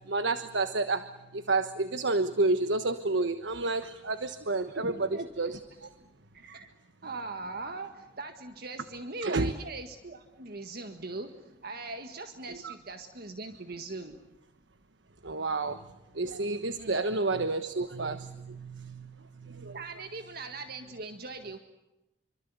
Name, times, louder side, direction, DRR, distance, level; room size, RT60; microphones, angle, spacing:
voice 1, 0.1-5.1 5.4-5.9 9.2-9.5 12.6-12.7 15.2-15.8 16.1-19.8, right 3 dB, 90° right, 10 dB, 1.3 m, -30 dB
voice 2, 4.7-5.3 6.3-6.7 7.0-14.2 16.8-17.0 19.7-21.6, right 3 dB, 55° right, 6 dB, 1.7 m, -40 dB
28.0 x 25.0 x 8.2 m, 0.97 s
head